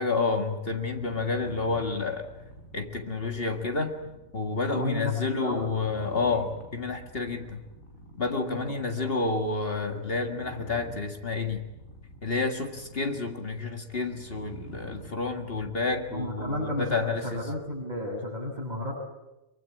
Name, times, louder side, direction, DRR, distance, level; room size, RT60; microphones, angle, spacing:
voice 1, 0.0-2.3 2.7-3.9 4.3-7.6 8.2-11.6 12.2-17.4, left 3 dB, 45° left, 5 dB, 2.1 m, -29 dB
sound 1, 0.7-17.9, right 1 dB, 70° left, 5.2 m, -48 dB
voice 2, 4.7-5.7 8.4-8.8 16.1-18.9, left 1 dB, 30° right, -6 dB, 7.0 m, -33 dB
24.0 x 23.5 x 8.5 m, 0.98 s
omnidirectional pair, 1.4 m